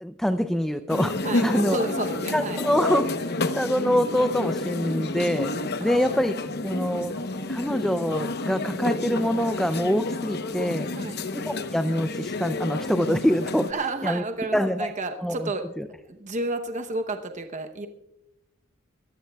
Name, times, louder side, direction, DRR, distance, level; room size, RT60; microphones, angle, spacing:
voice 1, 0.0-1.8 2.3-5.5 5.8-6.4 6.6-7.1 7.5-10.9 11.3-13.7 14.0-14.2 14.5-14.9 15.2-15.5 15.8-15.9, equal, ahead, 9 dB, 0.4 m, -25 dB
sound 1, 0.9-13.7, left 2 dB, 50° left, 0.9 m, -30 dB
voice 2, 1.2-2.6 5.8-6.1 10.9-11.2 13.7-15.6 16.0-17.9, right 2 dB, 35° right, 6 dB, 0.9 m, -32 dB
25.5 x 14.5 x 2.3 m, 0.90 s
head